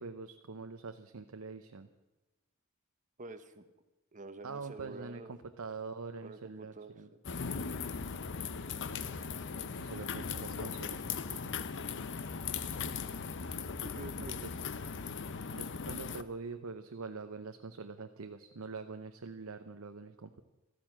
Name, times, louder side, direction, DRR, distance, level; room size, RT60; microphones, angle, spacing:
voice 1, 0.0-1.9 4.4-7.1 9.7-11.7 15.5-20.4, right 4 dB, 80° right, 7 dB, 0.8 m, -44 dB
voice 2, 3.2-3.6 4.1-5.4 6.2-7.2 13.8-14.5, right 3 dB, 35° right, 10 dB, 1.0 m, -48 dB
sound 1, 7.2-16.2, left 5 dB, 55° left, 0.7 m, -38 dB
13.5 x 13.5 x 7.5 m, 1.1 s
head